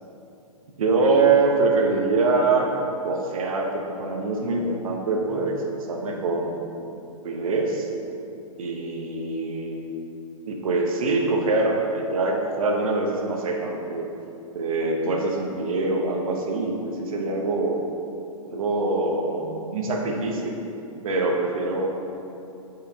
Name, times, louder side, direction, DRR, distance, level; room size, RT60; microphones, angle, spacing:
voice 1, 0.8-2.7 3.0-6.7 7.2-7.9 8.6-9.9 10.5-14.1 14.5-17.8 18.4-20.6 21.0-21.9, right 3 dB, 80° right, 0 dB, 1.0 m, -24 dB
9.1 x 4.9 x 2.8 m, 2.8 s
hypercardioid pair, 150°, 18 cm